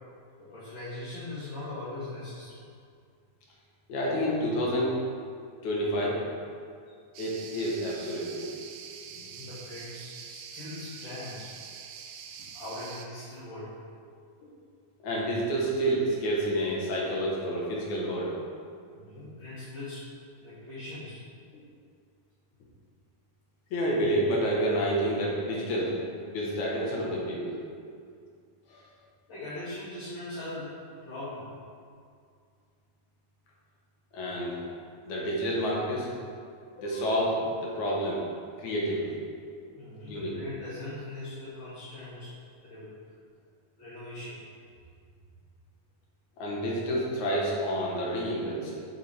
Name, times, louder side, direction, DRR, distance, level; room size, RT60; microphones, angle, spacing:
voice 1, 0.4-2.6 9.0-11.5 12.5-13.7 18.9-20.1 20.4-21.2 29.3-30.7 31.0-31.5 39.8-42.4 42.6-42.9 43.8-44.4, left 2 dB, 35° left, -14 dB, 2.3 m, -40 dB
voice 2, 3.9-5.0 5.6-6.2 7.2-8.5 15.0-18.4 23.7-26.0 26.3-27.6 28.7-28.8 34.1-34.6 35.0-36.1 36.8-38.2 38.6-39.2 40.1-40.3 46.4-48.9, equal, 60° left, -4 dB, 2.5 m, -29 dB
sound 1, 7.1-13.1, right 7 dB, 80° right, 2.1 m, -45 dB
9.2 x 7.3 x 3.6 m, 2.2 s
omnidirectional pair, 4.3 m